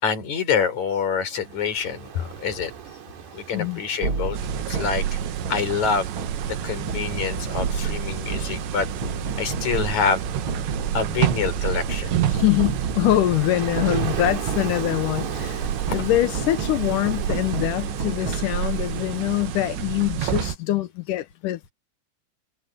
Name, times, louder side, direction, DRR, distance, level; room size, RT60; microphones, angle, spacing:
voice 1, 0.0-2.7 3.3-4.4 4.7-5.2 5.5-6.1 6.4-8.9 9.4-10.2 10.9-12.4 15.9-16.0, left 6 dB, 40° left, 6.8 m, -26 dB
Ocean, 1.2-20.3, right 8 dB, 70° right, 4.9 m, -39 dB
sound 1, 4.0-19.3, right 4 dB, 35° right, 2.9 m, -32 dB
sound 2, 4.3-20.6, right 10 dB, 85° right, 3.7 m, -29 dB
voice 2, 12.4-21.7, left 15 dB, 80° left, 1.9 m, -24 dB
omnidirectional pair, 5.0 m